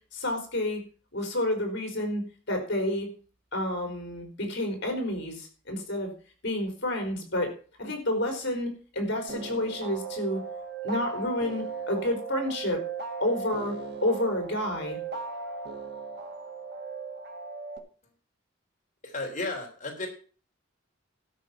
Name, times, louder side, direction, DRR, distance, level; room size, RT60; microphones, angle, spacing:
voice 1, 0.1-0.8 1.1-3.1 3.5-6.1 6.4-7.5 7.8-10.4 10.8-12.8 13.2-13.8 14.0-15.0, left 1 dB, 60° left, 5 dB, 4.2 m, -29 dB
sound 1, 9.3-17.8, right 5 dB, 55° right, 1.9 m, -37 dB
voice 2, 19.0-20.1, left 2 dB, 40° left, 1 dB, 3.4 m, -33 dB
13.0 x 5.6 x 7.5 m, 0.39 s
head